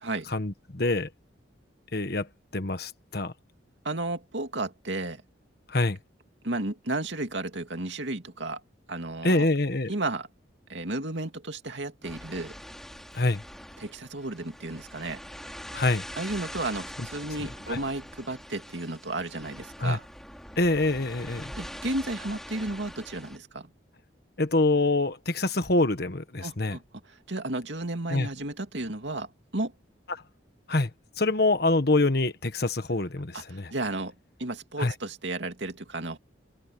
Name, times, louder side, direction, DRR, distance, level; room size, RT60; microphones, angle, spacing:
voice 1, 0.3-1.1 1.9-2.3 2.5-3.3 5.7-6.0 9.2-9.9 13.1-13.4 15.7-16.0 17.7-17.8 19.8-20.0 20.6-21.5 24.4-26.8 28.1-28.3 30.1-30.2 30.7-30.9 31.2-33.7 34.8-34.9, left 2 dB, 55° left, 1.5 m, -25 dB
voice 2, 3.8-5.2 6.4-8.6 8.9-9.5 9.9-10.3 10.7-12.5 13.8-15.2 16.2-20.1 21.5-23.7 26.4-26.8 27.1-29.7 33.3-33.4 33.7-34.1 34.4-36.2, right 2 dB, 70° right, 2.5 m, -33 dB
sound 1, 12.0-23.4, equal, ahead, 3.1 m, -43 dB
open air
head